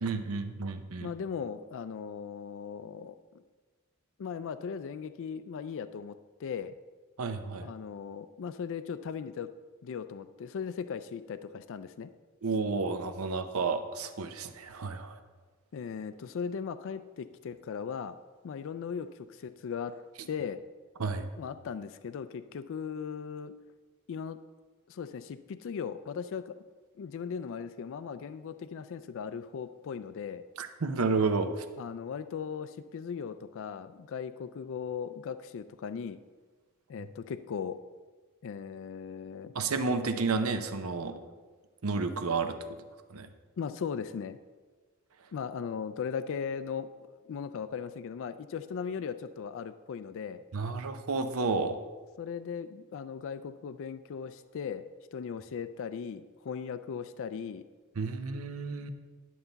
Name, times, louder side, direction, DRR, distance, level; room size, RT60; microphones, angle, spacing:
voice 1, 0.0-1.1 7.2-7.7 12.4-15.2 21.0-21.3 30.6-31.6 39.5-41.1 41.8-42.6 43.1-43.3 50.5-51.8 58.0-58.9, right 4 dB, 70° right, 9 dB, 0.7 m, -31 dB
voice 2, 1.0-3.2 4.2-6.1 6.4-6.8 7.6-9.5 9.8-12.1 15.7-18.2 18.4-20.0 20.3-20.6 21.4-23.5 24.1-24.4 24.9-26.6 27.0-30.4 31.8-36.2 36.9-37.8 38.4-39.5 43.6-44.4 45.3-50.4 52.2-54.8 55.1-57.6, left 6 dB, 60° left, 12 dB, 0.4 m, -38 dB
11.0 x 6.9 x 3.9 m, 1.4 s
head